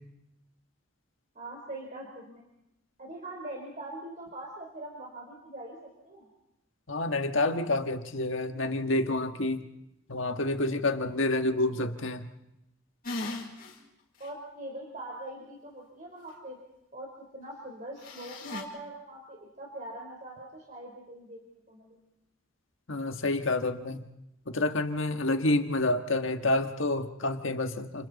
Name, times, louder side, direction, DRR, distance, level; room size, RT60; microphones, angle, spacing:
voice 1, 1.3-2.5 3.0-6.3 14.2-16.6 16.9-22.0, right 1 dB, 35° right, -1 dB, 4.1 m, -42 dB
voice 2, 6.9-9.6 10.1-12.3 22.9-24.1 24.5-28.1, left 2 dB, 70° left, 6 dB, 1.6 m, -28 dB
sound 1, 13.0-13.8 14.2-14.3 18.0-18.6, left 2 dB, 45° left, 5.0 m, -37 dB
29.5 x 28.5 x 4.2 m, 0.84 s
head